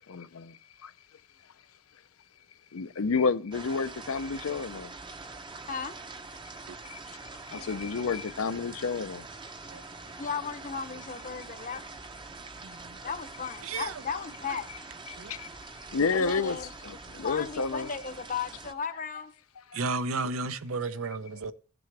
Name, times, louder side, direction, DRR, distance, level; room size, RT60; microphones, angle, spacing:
voice 1, 0.1-0.5 0.8-0.9 2.7-4.9 6.9-7.0 7.5-9.2 15.1-15.5 15.9-16.6 16.8-17.9, left 4 dB, 80° left, 0.6 m, -30 dB
sound 1, 3.5-18.7, right 3 dB, 20° right, 0.7 m, -45 dB
voice 2, 7.5-8.1 9.7-10.2 12.6-13.0 13.6-13.9 15.2-15.3 15.9-16.0 19.7-21.5, right 3 dB, 75° right, 0.6 m, -34 dB
voice 3, 10.2-11.8 13.0-14.7 16.1-16.7 17.2-19.3, left 6 dB, 40° left, 0.8 m, -35 dB
15.5 x 6.2 x 3.3 m
head